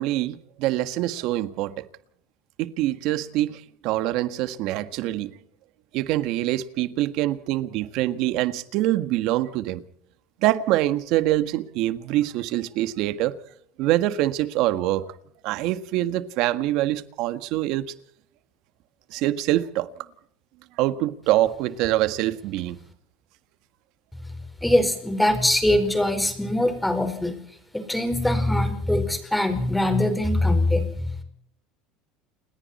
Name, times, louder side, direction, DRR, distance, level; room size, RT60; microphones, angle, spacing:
voice 1, 0.0-1.8 2.6-5.3 5.9-9.8 10.4-13.4 13.8-15.1 15.4-17.9 19.1-19.9 20.8-22.8, right 15 dB, 65° right, 1.6 m, -25 dB
voice 2, 24.6-27.3 27.7-31.1, left 1 dB, 5° left, 4.8 m, -22 dB
29.0 x 21.0 x 4.4 m
supercardioid pair, 125°, 0 cm